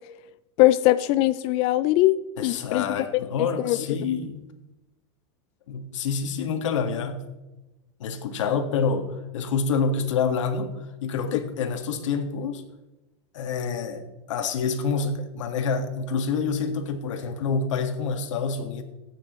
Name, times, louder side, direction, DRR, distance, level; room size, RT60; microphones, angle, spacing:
voice 1, 0.6-2.8 3.6-3.8 11.3-11.4, left 16 dB, 40° left, 12 dB, 0.4 m, -21 dB
voice 2, 2.4-4.5 5.7-7.2 8.0-10.7 11.0-12.6 13.3-18.8, left 5 dB, 90° left, 6 dB, 1.7 m, -27 dB
15.5 x 9.0 x 3.1 m, 1.0 s
supercardioid pair, 145°, 15 cm